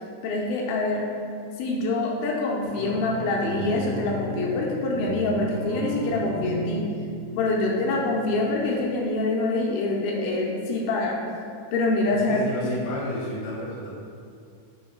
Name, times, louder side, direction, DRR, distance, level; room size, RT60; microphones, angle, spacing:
voice 1, 0.2-1.0 1.6-6.8 7.4-11.2 11.7-12.4, left 2 dB, 85° left, -2 dB, 3.0 m, -25 dB
sound 1, 2.6-8.5, right 2 dB, 70° right, 3.3 m, -34 dB
voice 2, 12.1-13.9, left 1 dB, 65° left, -6 dB, 1.9 m, -31 dB
7.0 x 3.7 x 4.6 m, 2.3 s
omnidirectional pair, 5.5 m